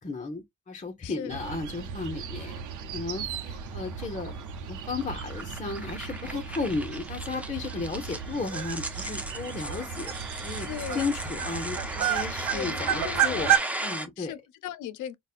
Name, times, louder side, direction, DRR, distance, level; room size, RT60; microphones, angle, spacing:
voice 1, 0.0-2.6 2.9-4.4 4.7-10.1 10.4-14.3, left 3 dB, 25° left, 0.8 m, -34 dB
voice 2, 1.0-1.4 10.6-11.0 12.5-13.5 14.2-15.1, left 11 dB, 80° left, 0.5 m, -37 dB
sound 1, 1.3-13.6, right 9 dB, 80° right, 0.8 m, -33 dB
sound 2, 3.3-14.1, right 1 dB, 5° right, 0.7 m, -37 dB
4.1 x 2.2 x 2.4 m
cardioid pair, 90°, 30 cm